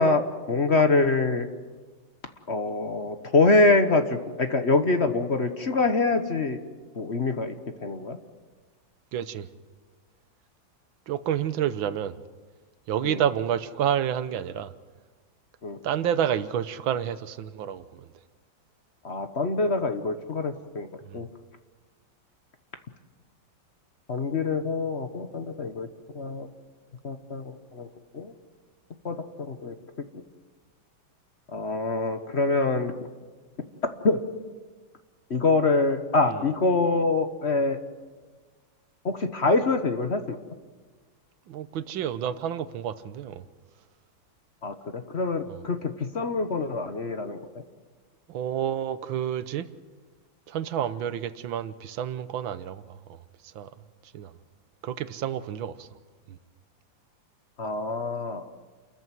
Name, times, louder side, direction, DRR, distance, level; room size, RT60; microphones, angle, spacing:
voice 1, 0.0-1.5 2.5-6.6 6.9-7.5 7.8-8.2 13.0-13.2 15.6-15.8 19.0-20.9 21.1-21.3 24.1-25.9 26.1-26.5 27.0-27.9 28.1-28.3 29.0-29.7 30.1-30.2 31.5-32.9 34.0-34.2 35.3-37.8 39.0-40.4 44.6-47.4 57.6-58.4, left 3 dB, 40° left, 1.2 m, -25 dB
voice 2, 9.1-9.5 11.1-12.2 12.9-14.7 15.8-18.1 21.1-21.2 36.3-36.4 41.5-43.4 45.5-45.6 48.3-49.7 50.5-53.7 54.1-54.3 54.8-55.9 56.3-56.4, right 9 dB, 90° right, 1.7 m, -29 dB
29.0 x 14.5 x 9.2 m
omnidirectional pair, 2.1 m